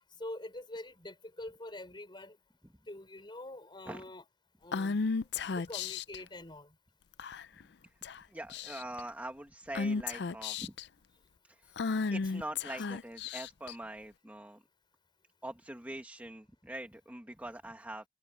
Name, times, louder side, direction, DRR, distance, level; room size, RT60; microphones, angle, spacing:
voice 1, 0.2-2.4 2.9-4.2 4.6-5.0 5.6-6.7, left 1 dB, 25° left, 4.7 m, -45 dB
Female speech woman speaking / Whispering, 4.7-6.2 7.2-7.6 8.0-8.2 8.5-9.0 9.8-10.8 11.8-13.7, left 4 dB, 70° left, 0.5 m, -34 dB
voice 2, 8.3-10.7 11.4-11.8 12.1-14.6 15.4-18.0, right 1 dB, 10° right, 1.7 m, -43 dB
head